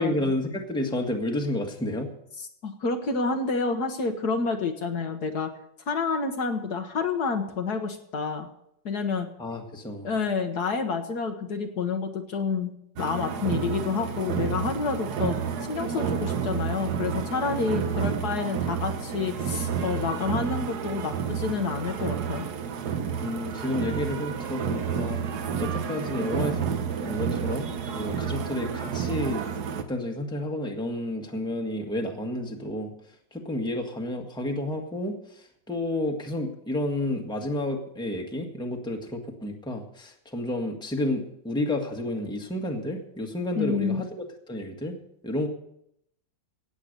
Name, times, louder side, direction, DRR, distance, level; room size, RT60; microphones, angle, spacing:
voice 1, 0.0-2.1 9.4-10.1 23.2-29.4 29.7-32.9 33.3-45.0 45.2-45.5, left 1 dB, 5° left, 2 dB, 1.5 m, -31 dB
voice 2, 2.6-5.5 5.9-8.5 8.9-9.3 10.0-12.7 13.0-15.4 15.7-22.5 43.6-44.0, left 4 dB, 60° left, 5 dB, 1.7 m, -28 dB
sound 1, 13.0-29.8, right 7 dB, 65° right, 1.5 m, -30 dB
17.5 x 8.1 x 6.6 m, 0.75 s
omnidirectional pair, 2.0 m